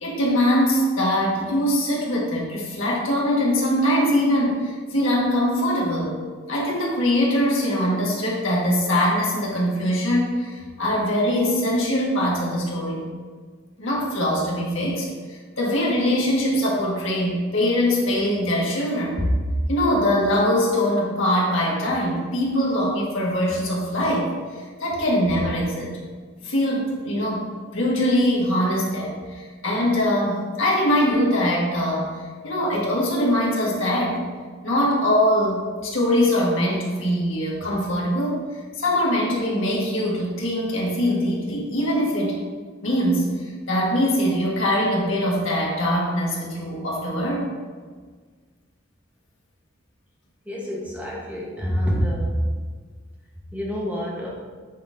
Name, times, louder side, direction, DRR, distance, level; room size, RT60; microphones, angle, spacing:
voice 1, 0.0-6.2 6.5-13.0 13.8-19.2 19.7-25.9 26.4-34.2 34.6-38.4 38.8-42.4 42.8-47.5, equal, 75° left, -4 dB, 1.6 m, -22 dB
voice 2, 50.5-52.4 53.5-54.3, equal, 5° right, -4 dB, 1.1 m, -26 dB
9.1 x 4.2 x 2.6 m, 1.5 s
head